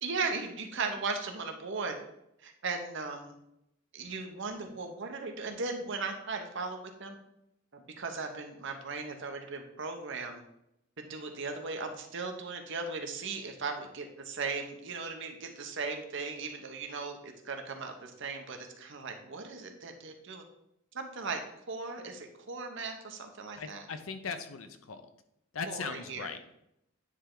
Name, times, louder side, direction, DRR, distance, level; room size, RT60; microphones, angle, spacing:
voice 1, 0.0-2.0 2.4-3.3 3.9-7.2 7.7-10.4 11.0-20.4 20.9-21.4 21.7-23.9 25.7-26.3, right 4 dB, 65° right, 4 dB, 0.9 m, -37 dB
voice 2, 23.5-25.0 25.5-26.4, left 5 dB, 75° left, 9 dB, 0.6 m, -39 dB
9.3 x 3.4 x 3.8 m, 0.81 s
head